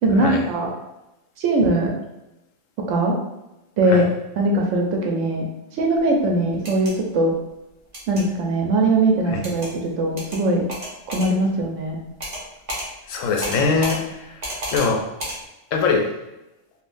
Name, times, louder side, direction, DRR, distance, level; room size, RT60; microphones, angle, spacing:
voice 1, 0.0-0.7 1.4-1.9 2.9-3.1 3.8-4.0 4.4-5.5 5.8-7.3 8.1-10.6 11.1-12.0, right 2 dB, 75° right, 0 dB, 0.9 m, -20 dB
sound 1, 6.5-6.9 7.9-8.2 9.4-9.7 10.2-10.4 10.7-11.3 12.2-12.4 12.7-12.9 13.4-14.0 14.4-14.9 15.2-15.4, equal, 35° right, 0.9 m, -30 dB
voice 2, 13.1-14.4 14.7-15.1 15.7-16.1, left 4 dB, 80° left, 2 dB, 0.9 m, -22 dB
3.6 x 2.5 x 2.5 m, 0.95 s
omnidirectional pair, 1.3 m